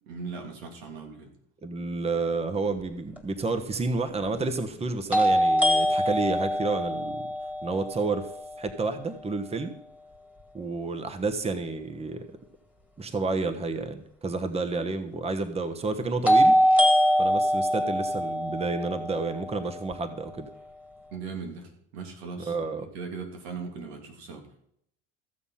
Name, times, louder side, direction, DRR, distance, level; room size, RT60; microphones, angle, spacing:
voice 1, 0.0-1.4 21.1-24.7, right 5 dB, 85° right, 4 dB, 2.9 m, -39 dB
voice 2, 1.6-7.2 7.6-8.3 8.6-9.7 10.5-12.3 13.0-16.6 17.2-20.5 22.4-22.9, right 3 dB, 20° right, 8 dB, 1.2 m, -30 dB
sound 1, 3.2-3.3 5.1-9.0 16.3-20.3, equal, 5° right, 1.9 m, -24 dB
15.0 x 7.1 x 5.7 m, 0.71 s
supercardioid pair, 105°, 30 cm